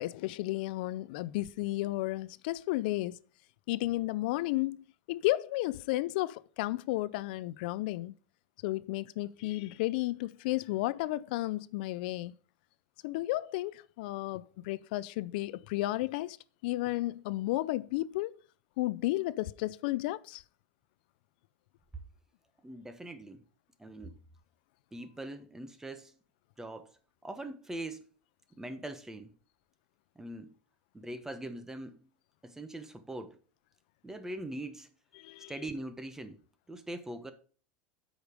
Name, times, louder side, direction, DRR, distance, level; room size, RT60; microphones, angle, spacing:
voice 1, 0.0-3.2 3.7-4.8 5.1-8.1 8.6-12.3 13.0-16.4 16.6-18.4 18.8-20.4 35.2-35.5, left 17 dB, 75° left, 0.4 m, -33 dB
voice 2, 22.6-23.4 23.8-24.2 24.9-26.1 26.6-26.9 27.2-28.1 28.6-29.3 30.2-30.5 30.9-32.0 32.4-33.4 34.0-34.9 35.5-36.4 36.7-37.3, right 1 dB, 10° right, 1.0 m, -42 dB
7.9 x 5.1 x 5.2 m
supercardioid pair, 120°, 5 cm